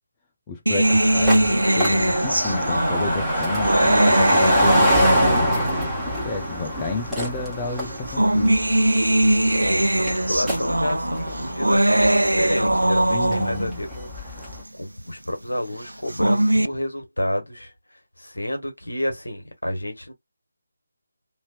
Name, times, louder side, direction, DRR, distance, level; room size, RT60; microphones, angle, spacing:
voice 1, 0.5-5.3 6.2-8.5 13.1-13.8, left 3 dB, 15° left, 0.7 m, -31 dB
sound 1, 0.7-5.7 6.7-6.8 7.9-13.8 15.9-16.7, right 1 dB, 75° right, 0.5 m, -20 dB
sound 2, 0.8-14.6, equal, ahead, 1.5 m, -26 dB
voice 2, 9.6-14.4 14.7-17.7 18.2-20.1, left 1 dB, 75° left, 1.5 m, -30 dB
3.1 x 2.9 x 2.4 m
figure-of-eight pair, 155°, 0 cm